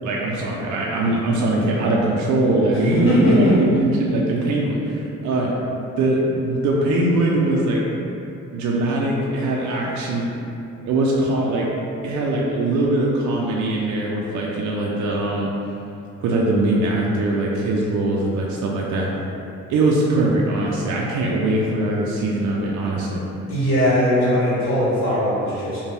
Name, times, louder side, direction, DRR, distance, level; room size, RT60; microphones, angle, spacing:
voice 1, 0.0-5.6 6.0-7.8 8.5-10.3 10.8-11.7 12.0-15.5 16.2-19.1 19.7-23.2, right 2 dB, 70° right, -2 dB, 0.4 m, -21 dB
voice 2, 2.7-3.6 23.5-25.8, equal, 45° left, -10 dB, 1.3 m, -19 dB
2.6 x 2.2 x 3.2 m, 2.8 s
cardioid pair, 90°, 30 cm